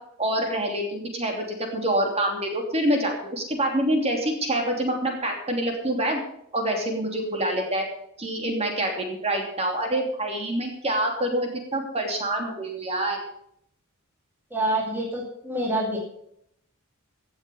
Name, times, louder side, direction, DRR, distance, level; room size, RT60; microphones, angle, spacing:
voice 1, 0.2-1.4 1.7-6.2 6.5-7.8 8.2-13.2, right 1 dB, 30° right, 2 dB, 3.0 m, -26 dB
voice 2, 14.5-16.0, right 1 dB, 10° right, -2 dB, 2.5 m, -26 dB
16.5 x 7.2 x 6.9 m, 0.74 s
head